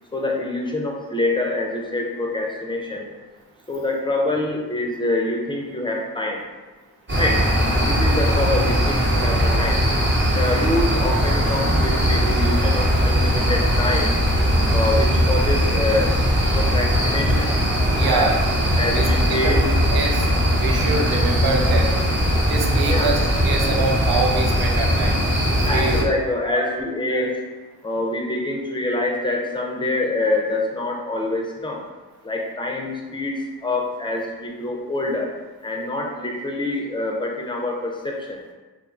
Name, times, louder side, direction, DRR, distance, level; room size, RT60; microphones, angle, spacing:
voice 1, 0.1-3.0 3.7-6.4 7.2-7.4 7.7-9.8 10.4-14.1 14.7-16.1 16.5-17.4 18.0-18.3 18.8-19.6 22.9-23.1 25.6-27.4 27.8-31.8 32.2-35.3 35.6-38.4, left 2 dB, 15° left, -1 dB, 0.5 m, -25 dB
sound 1, 7.1-26.0, equal, 30° right, 0.8 m, -20 dB
voice 2, 18.0-18.3 18.9-19.1 19.4-19.5 19.9-20.3 20.6-21.9 22.5-26.1 26.6-26.7 27.1-27.2, right 3 dB, 70° right, 1 dB, 0.5 m, -25 dB
2.6 x 2.3 x 2.5 m, 1.3 s
supercardioid pair, 45°, 38 cm